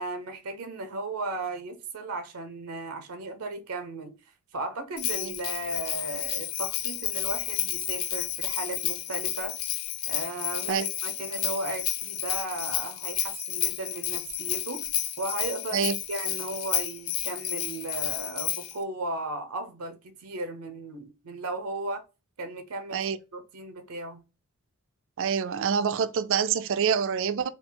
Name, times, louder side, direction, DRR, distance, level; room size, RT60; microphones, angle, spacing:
voice 1, 0.0-4.1 4.5-9.6 10.1-14.8 15.2-22.0 22.4-23.0 23.3-24.2, right 2 dB, 85° right, 0.7 m, -35 dB
Bell, 5.0-18.8, left 12 dB, 70° left, 0.5 m, -31 dB
voice 2, 25.2-27.5, right 7 dB, 60° right, 0.4 m, -26 dB
3.8 x 2.4 x 3.8 m
head